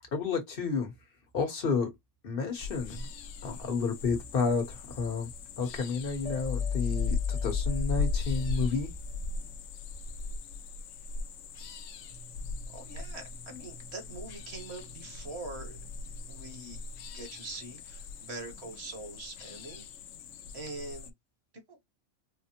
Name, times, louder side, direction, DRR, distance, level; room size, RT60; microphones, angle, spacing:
voice 1, 0.1-0.9 1.3-1.9 2.2-3.0 3.4-5.3 5.6-8.9, left 4 dB, 45° left, 1.2 m, -31 dB
sound 1, 2.6-21.1, left 3 dB, 75° left, 0.9 m, -39 dB
sound 2, 6.3-9.4, left 7 dB, 85° right, 1.1 m, -34 dB
voice 2, 12.1-19.9 20.5-21.1 21.7-21.8, right 2 dB, 55° right, 1.3 m, -44 dB
4.2 x 2.1 x 2.9 m
omnidirectional pair, 1.3 m